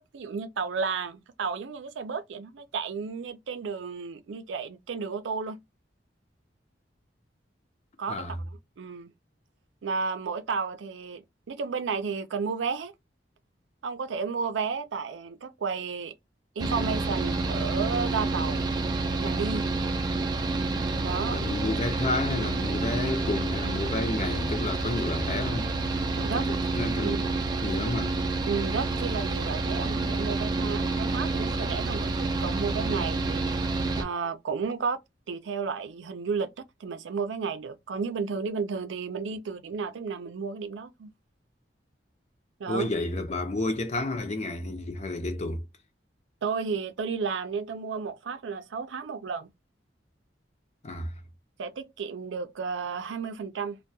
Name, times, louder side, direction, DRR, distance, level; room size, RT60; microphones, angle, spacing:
voice 1, 0.0-5.6 8.0-8.2 8.8-9.1 9.8-12.9 13.8-16.1 16.6-18.6 19.0-19.7 21.0-21.4 26.2-26.4 27.0-27.3 28.5-33.7 34.0-35.0 35.3-36.5 36.8-41.1 42.6-42.9 46.4-49.5 51.6-53.8, right 5 dB, 85° right, 0.4 m, -32 dB
Mechanical fan, 16.6-34.0, right 3 dB, 25° right, 0.3 m, -28 dB
voice 2, 21.3-27.2 27.6-28.2 42.7-45.6 50.8-51.1, left 2 dB, 40° left, 0.5 m, -31 dB
2.2 x 2.2 x 2.6 m
head